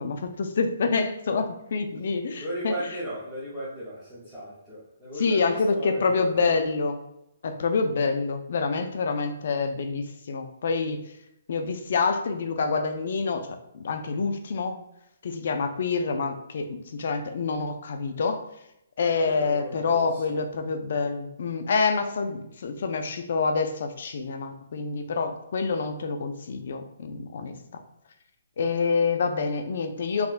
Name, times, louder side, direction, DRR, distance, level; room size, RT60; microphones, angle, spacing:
voice 1, 0.0-2.7 5.2-7.0 7.4-11.0 11.5-14.8 15.2-18.5 19.0-27.8 28.6-30.3, left 4 dB, 50° left, 7 dB, 0.3 m, -27 dB
voice 2, 2.4-6.5 19.2-20.4, equal, 5° right, -13 dB, 0.6 m, -36 dB
3.4 x 2.1 x 2.4 m, 0.84 s
hypercardioid pair, 175°, 0 cm